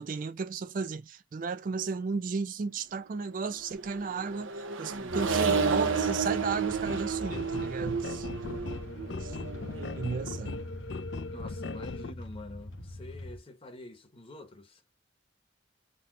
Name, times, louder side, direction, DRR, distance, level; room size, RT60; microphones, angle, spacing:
voice 1, 0.0-8.3 9.2-9.4 9.8-10.6, right 4 dB, 45° right, 0.3 m, -34 dB
Accelerating revving vroom, 3.7-10.4, right 5 dB, 90° right, 0.8 m, -31 dB
sound 1, 5.1-13.4, left 2 dB, 80° left, 1.1 m, -42 dB
sound 2, 6.9-12.1, left 3 dB, 65° left, 0.5 m, -39 dB
voice 2, 8.3-8.9 11.3-14.8, left 1 dB, 30° left, 0.9 m, -47 dB
4.1 x 2.1 x 2.6 m
head